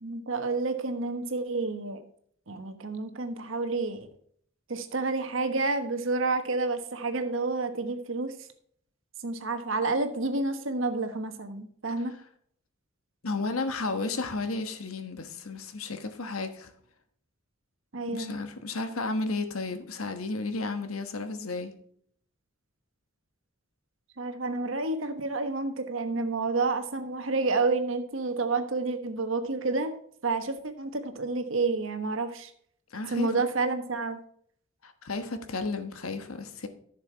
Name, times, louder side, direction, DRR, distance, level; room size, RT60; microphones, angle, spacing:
voice 1, 0.0-2.0 2.5-4.1 4.7-8.3 9.2-12.1 17.9-18.4 24.2-30.0 30.2-32.5 33.1-34.2, right 3 dB, 65° right, 1.2 m, -29 dB
voice 2, 13.2-16.7 18.1-21.7 32.9-33.3 34.8-36.7, left 3 dB, 90° left, 1.3 m, -33 dB
11.0 x 6.7 x 4.5 m
head